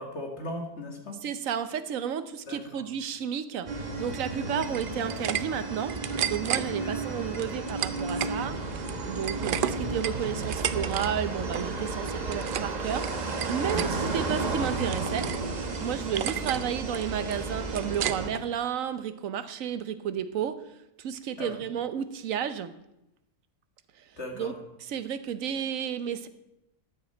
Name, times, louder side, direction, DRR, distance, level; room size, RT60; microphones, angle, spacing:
voice 1, 0.0-1.2 2.5-2.8 6.8-6.9 13.7-14.0 21.4-21.6 24.2-24.6, left 1 dB, 50° left, 2 dB, 2.4 m, -37 dB
voice 2, 1.2-3.7 4.0-6.0 6.3-8.6 9.0-15.3 15.6-20.6 21.0-22.7 24.3-24.5 24.9-26.3, right 8 dB, 65° right, 12 dB, 1.1 m, -32 dB
sound 1, 3.7-18.3, right 3 dB, 30° right, 1.1 m, -33 dB
sound 2, 4.6-5.4 5.7-6.6 7.3-8.4 8.7-11.1 11.3-11.7 12.1-12.7 13.0-13.9 14.3-15.4 15.7-15.8 16.2-16.6 16.9-18.4, right 9 dB, 85° right, 0.4 m, -32 dB
14.5 x 10.5 x 4.4 m, 0.89 s
omnidirectional pair, 1.5 m